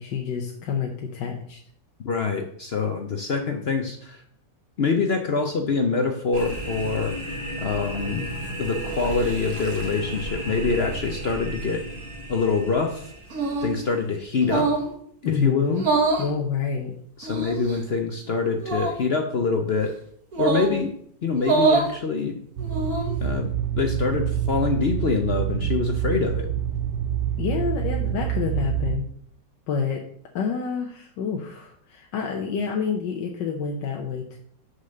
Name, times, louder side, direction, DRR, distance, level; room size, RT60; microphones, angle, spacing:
voice 1, 0.0-1.6 15.2-15.9 16.2-16.9 27.4-29.1 29.7-30.0 30.3-34.4, left 6 dB, 85° left, 2 dB, 1.6 m, -28 dB
voice 2, 2.0-4.2 4.8-7.2 7.6-8.3 8.6-11.9 12.3-13.1 13.6-14.7 15.2-15.8 17.2-20.0 20.4-22.4 23.2-23.5 23.8-26.5, left 4 dB, 55° left, 5 dB, 0.7 m, -25 dB
sound 1, 6.3-14.2, right 1 dB, 30° right, 1.6 m, -34 dB
sound 2, 13.3-13.8 14.4-14.9 15.7-16.3 17.2-17.8 18.6-19.0 20.3-20.8 21.4-21.9 22.6-23.2, right 4 dB, 55° right, 2.0 m, -24 dB
sound 3, 22.6-29.0, right 10 dB, 75° right, 1.4 m, -26 dB
6.5 x 5.6 x 6.5 m, 0.64 s
omnidirectional pair, 1.9 m